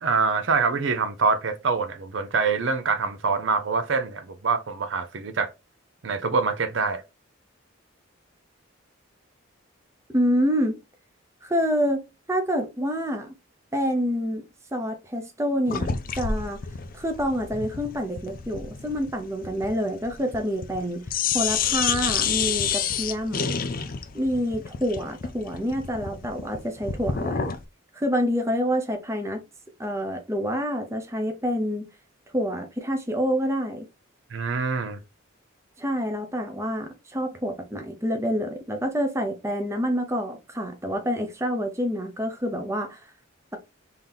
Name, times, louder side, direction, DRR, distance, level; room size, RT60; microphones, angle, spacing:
voice 1, 0.0-5.5 6.0-7.0 34.3-35.0, right 4 dB, 65° right, 0.5 m, -25 dB
voice 2, 10.1-10.8 11.4-13.3 13.7-14.4 14.7-16.6 16.9-21.0 21.3-23.5 24.1-27.5 28.0-29.4 29.8-31.8 32.3-33.9 35.8-43.0, equal, 15° right, 0.7 m, -27 dB
sound 1, 15.7-20.8 21.1-27.6, left 7 dB, 45° left, 0.4 m, -29 dB
3.8 x 2.8 x 3.4 m
head